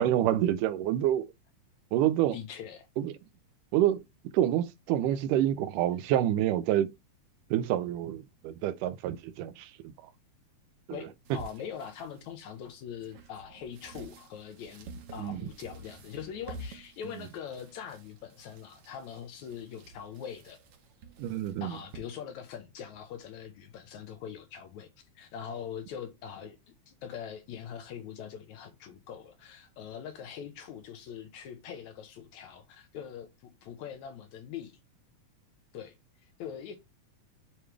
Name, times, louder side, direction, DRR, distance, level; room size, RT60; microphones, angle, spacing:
voice 1, 0.0-1.3 1.9-2.4 3.0-3.1 3.7-4.0 4.3-6.9 7.5-10.1 10.9-11.0 15.1-15.4 21.2-21.8, right 12 dB, 90° right, 2.2 m, -28 dB
voice 2, 2.3-2.9 10.9-20.6 21.6-24.9 25.2-26.6 26.9-34.8 35.7-35.9 36.4-36.8, left 8 dB, 70° left, 2.2 m, -42 dB
sound 1, 11.2-22.0, right 3 dB, 65° right, 1.6 m, -50 dB
9.1 x 3.3 x 3.3 m
omnidirectional pair, 3.6 m